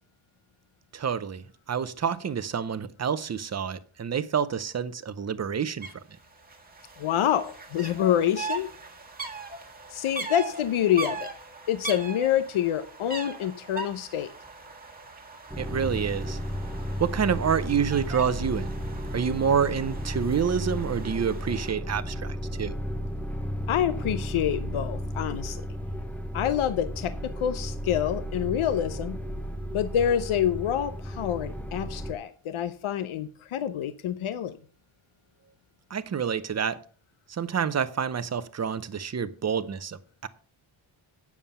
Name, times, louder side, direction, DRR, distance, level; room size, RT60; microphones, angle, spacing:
voice 1, 0.9-5.9 15.6-16.4 17.0-18.7 19.1-22.7 35.9-36.8 37.3-40.3, right 7 dB, 35° right, 0.7 m, -28 dB
sound 1, 5.8-5.9 6.2-21.7, right 3 dB, 20° right, 1.6 m, -40 dB
voice 2, 7.0-8.7 9.9-11.3 11.7-14.3 23.7-25.6 26.3-29.2 29.7-34.5, left 10 dB, 85° left, 0.8 m, -27 dB
sound 2, 15.5-32.1, equal, 5° left, 0.8 m, -34 dB
9.3 x 7.2 x 5.5 m
wide cardioid pair, 170°, 49 cm